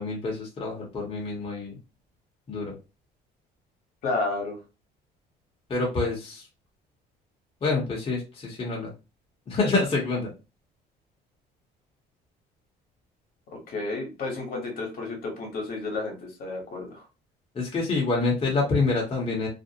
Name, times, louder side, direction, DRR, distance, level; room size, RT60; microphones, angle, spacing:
voice 1, 0.0-1.7 2.5-2.7 5.7-6.4 7.6-8.9 9.5-10.3 17.5-19.5, left 3 dB, 35° left, -3 dB, 0.9 m, -27 dB
voice 2, 4.0-4.6 13.7-17.0, left 3 dB, 60° left, 1 dB, 1.1 m, -31 dB
2.5 x 2.1 x 2.7 m, 0.29 s
cardioid pair, 110°, 17 cm